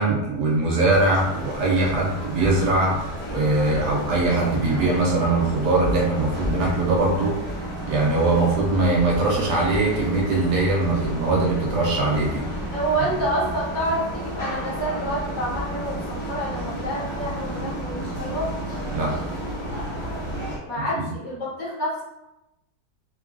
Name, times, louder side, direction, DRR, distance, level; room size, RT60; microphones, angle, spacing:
voice 1, 0.0-7.5 7.9-12.4 18.9-19.2 20.9-21.1, right 2 dB, 80° right, -3 dB, 1.4 m, -21 dB
sound 1, 0.9-20.6, equal, 25° left, 1.0 m, -32 dB
voice 2, 12.7-18.5 20.7-22.0, right 1 dB, 60° left, -7 dB, 1.4 m, -28 dB
3.4 x 2.3 x 2.5 m, 0.93 s
omnidirectional pair, 1.8 m